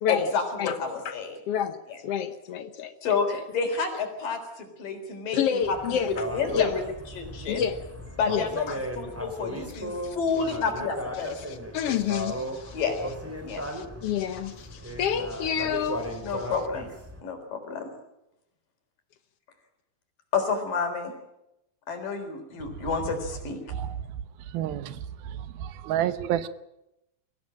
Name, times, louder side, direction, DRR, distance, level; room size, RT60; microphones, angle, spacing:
voice 1, 0.1-1.4 1.9-2.0 3.0-7.6 8.2-11.6 12.7-13.0 13.4-13.6 16.2-16.9 17.2-17.9 20.3-21.1 21.9-23.6, left 5 dB, 65° left, 5.5 m, -30 dB
voice 2, 1.5-2.9 5.3-6.2 6.5-6.7 7.5-7.8 8.3-8.8 10.0-10.2 11.4-12.8 13.5-16.2, left 8 dB, 90° left, 1.3 m, -29 dB
sound 1, 5.6-17.2, equal, 5° right, 2.6 m, -36 dB
voice 3, 24.5-25.0 25.6-26.5, right 11 dB, 90° right, 2.9 m, -28 dB
23.5 x 16.5 x 8.8 m
omnidirectional pair, 4.2 m